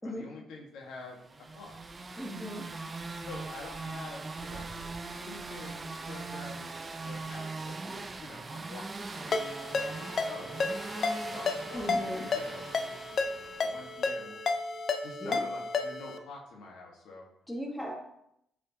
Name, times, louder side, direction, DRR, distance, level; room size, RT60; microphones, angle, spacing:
voice 1, 0.0-1.8 3.1-4.7 5.1-9.4 9.7-12.7 13.2-14.4 15.0-17.3, left 3 dB, 80° left, -1 dB, 1.5 m, -47 dB
sound 1, 1.2-14.2, right 3 dB, 30° right, 0.6 m, -41 dB
voice 2, 2.2-2.6 11.7-12.2 15.2-15.4 17.5-17.9, equal, 5° left, 0 dB, 1.5 m, -37 dB
Ringtone, 9.3-16.2, left 4 dB, 50° left, 0.6 m, -32 dB
7.9 x 5.3 x 2.9 m, 0.78 s
cardioid pair, 90°, 0 cm